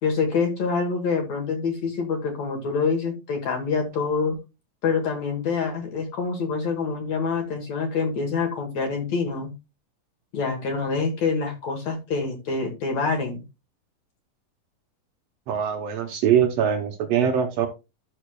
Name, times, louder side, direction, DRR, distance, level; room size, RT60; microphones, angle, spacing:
voice 1, 0.0-4.4 4.8-9.5 10.3-13.4, left 5 dB, 60° left, 3 dB, 2.3 m, -26 dB
voice 2, 15.5-17.7, right 8 dB, 85° right, 5 dB, 1.4 m, -22 dB
12.5 x 6.7 x 2.3 m, 0.26 s
omnidirectional pair, 4.1 m